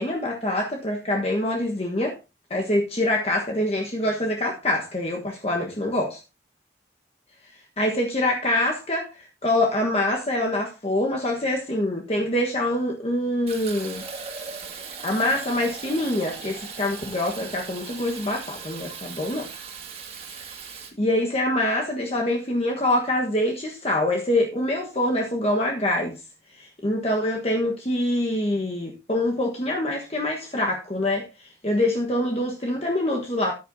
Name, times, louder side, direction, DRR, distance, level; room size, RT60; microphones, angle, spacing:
voice 1, 0.0-2.2 2.5-6.2 7.8-14.0 15.0-19.5 20.6-26.2 26.6-33.5, left 1 dB, 35° left, 1.3 m, -25 dB
Fill (with liquid), 13.5-20.9, right 5 dB, 35° right, 2.3 m, -38 dB
14.0 x 9.6 x 2.7 m
head